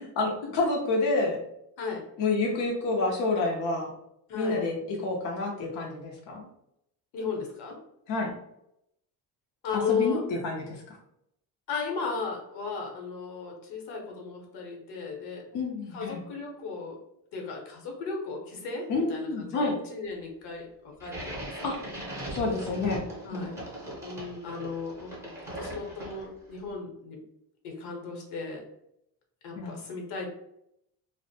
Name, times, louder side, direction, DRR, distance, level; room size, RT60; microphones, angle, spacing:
voice 1, 0.2-1.4 2.2-3.9 4.3-6.5 8.1-8.3 9.7-11.0 15.5-16.2 18.9-19.8 21.6-21.8 22.3-23.0 23.3-23.5 29.6-29.8, left 3 dB, 50° left, -1 dB, 0.5 m, -28 dB
voice 2, 4.3-4.6 7.1-7.8 9.6-10.2 11.7-15.5 15.9-17.0 17.3-21.5 21.8-21.9 23.3-23.5 24.0-27.2 27.6-28.6 29.4-30.3, left 5 dB, 70° left, 1 dB, 0.9 m, -35 dB
sound 1, 21.0-26.5, right 1 dB, 5° right, 0.6 m, -39 dB
2.4 x 2.0 x 2.6 m, 0.78 s
cardioid pair, 150°, 41 cm